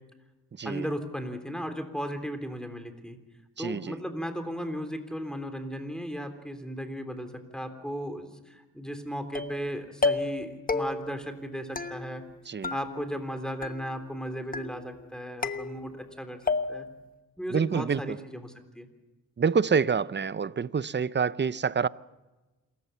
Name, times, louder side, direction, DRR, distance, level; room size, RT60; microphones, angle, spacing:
voice 1, 0.6-3.2 3.6-12.2 12.7-16.9 17.4-18.9, equal, ahead, 3.4 m, -36 dB
voice 2, 3.6-3.9 12.5-12.7 17.5-18.2 19.4-21.9, right 6 dB, 30° right, 0.6 m, -27 dB
sound 1, 9.3-9.7 10.0-10.4 10.7-11.2 11.8-12.4 12.6-13.3 13.6-14.1 14.5-15.0 15.4-16.1 16.5-17.0, left 3 dB, 25° left, 1.1 m, -32 dB
27.0 x 14.5 x 7.0 m
cardioid pair, 65°, 36 cm